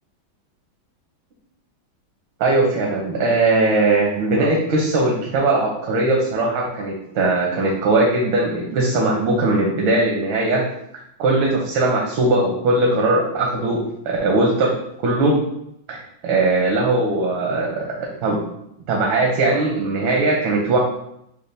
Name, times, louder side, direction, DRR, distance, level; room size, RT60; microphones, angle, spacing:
voice 1, 2.4-10.6 11.2-14.7 15.0-15.4 15.9-18.4 18.9-20.8, right 2 dB, 90° right, -2 dB, 1.6 m, -19 dB
6.8 x 2.3 x 3.3 m, 0.78 s
omnidirectional pair, 2.1 m